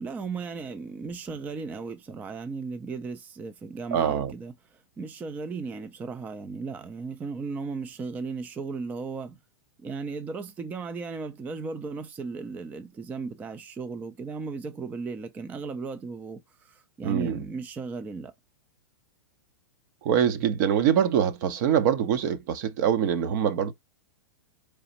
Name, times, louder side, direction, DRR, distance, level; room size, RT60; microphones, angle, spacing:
voice 1, 0.0-9.4 9.8-18.3, right 4 dB, 10° right, 0.3 m, -36 dB
voice 2, 3.9-4.3 17.0-17.4 20.0-23.7, right 9 dB, 50° right, 0.8 m, -24 dB
4.1 x 3.1 x 2.8 m
hypercardioid pair, 135°, 13 cm